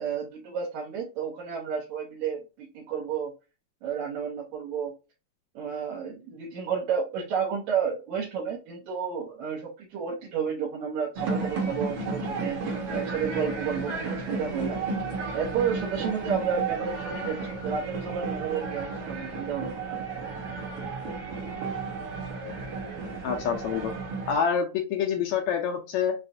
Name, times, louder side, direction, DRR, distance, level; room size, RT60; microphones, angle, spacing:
voice 1, 0.0-3.3 3.8-4.9 5.6-14.8 15.3-19.8, right 7 dB, 75° right, -3 dB, 2.2 m, -31 dB
sound 1, 11.1-24.4, right 4 dB, 60° right, 1.9 m, -33 dB
voice 2, 23.2-23.9 24.3-26.1, left 7 dB, 80° left, 3 dB, 1.9 m, -27 dB
5.6 x 2.5 x 2.5 m, 0.30 s
omnidirectional pair, 3.4 m